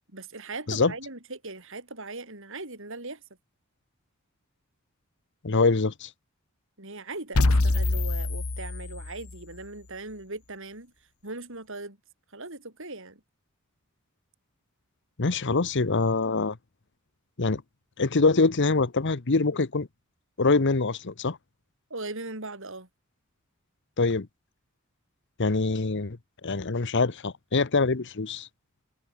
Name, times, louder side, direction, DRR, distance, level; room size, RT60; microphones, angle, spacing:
voice 1, 0.1-3.2 6.8-10.9 11.2-12.0 12.3-13.2 21.9-22.9, right 2 dB, 60° right, 5.8 m, -39 dB
voice 2, 5.4-6.1 15.2-16.6 17.4-17.6 18.0-19.9 20.4-21.4 24.0-24.3 25.4-26.2 26.4-28.5, left 3 dB, 55° left, 1.0 m, -24 dB
sound 1, 7.3-9.4, left 2 dB, 85° left, 1.3 m, -25 dB
head